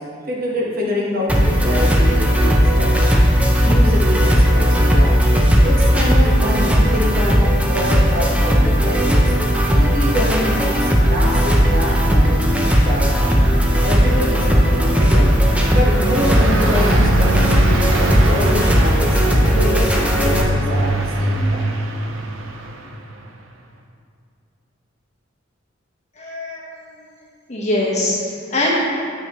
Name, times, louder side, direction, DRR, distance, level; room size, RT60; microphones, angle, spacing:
voice 1, 0.3-3.2 3.6-5.1 5.6-9.3 9.8-13.3 13.8-14.4 14.7-15.3 15.7-21.8, left 1 dB, 50° right, -4 dB, 1.3 m, -25 dB
sound 1, 1.3-20.4, equal, 5° right, 0.6 m, -16 dB
Car passing by, 12.1-23.1, right 1 dB, 80° right, 0.6 m, -24 dB
voice 2, 26.2-26.7 27.5-28.8, left 1 dB, 35° left, -5 dB, 1.3 m, -22 dB
7.3 x 6.2 x 3.1 m, 2.3 s
head